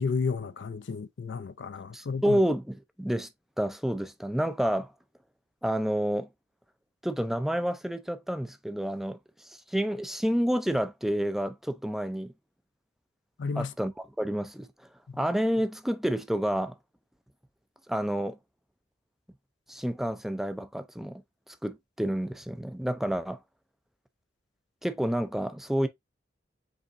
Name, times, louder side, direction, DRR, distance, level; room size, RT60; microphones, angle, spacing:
voice 1, 0.0-2.4 13.4-13.7, left 5 dB, 85° left, 0.5 m, -32 dB
voice 2, 1.9-3.3 3.6-4.9 5.6-6.3 7.0-9.2 9.7-12.3 13.6-14.7 15.2-16.8 17.9-18.4 19.7-21.2 21.6-23.4 24.8-25.9, equal, ahead, 0.4 m, -29 dB
5.3 x 3.4 x 2.6 m
head